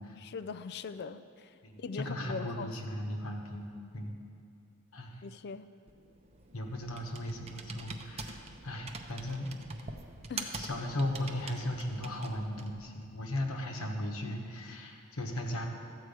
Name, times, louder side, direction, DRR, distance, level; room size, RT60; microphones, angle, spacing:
voice 1, 0.2-2.8 5.2-5.7 10.3-10.6, left 5 dB, 50° left, 12 dB, 0.4 m, -41 dB
voice 2, 1.6-3.7 3.9-4.1 4.9-5.2 6.5-9.5 10.6-15.6, left 1 dB, 75° left, 2 dB, 1.3 m, -37 dB
Computer keyboard, 5.9-12.8, right 3 dB, 30° right, 0.7 m, -44 dB
13.5 x 4.7 x 8.2 m, 2.4 s
head